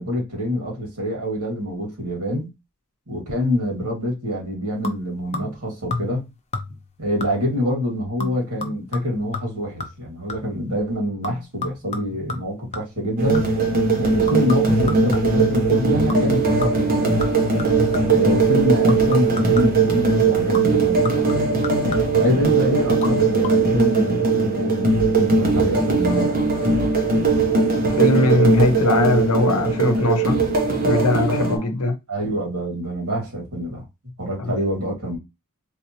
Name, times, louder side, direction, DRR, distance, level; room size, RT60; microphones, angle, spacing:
voice 1, 0.0-2.5 3.1-6.3 7.0-13.5 14.0-17.1 18.1-21.3 22.2-26.4 31.4-31.7 32.1-33.8 34.2-35.2, left 1 dB, 75° right, 2.0 m, -26 dB
sound 1, 4.8-5.6 5.9-6.3 6.5-6.9 7.2-7.6 8.2-10.6 11.2-13.7 14.3-15.5 16.1-16.3 16.6-18.3 18.9-19.9 20.5-22.3 22.9-23.1 23.4-23.5, left 3 dB, 30° left, 0.6 m, -32 dB
sound 2, 13.2-31.6, right 3 dB, 40° right, 1.0 m, -19 dB
voice 2, 28.0-30.4 30.8-31.9 34.4-34.5, left 2 dB, 70° left, 0.8 m, -20 dB
3.4 x 2.9 x 2.8 m
head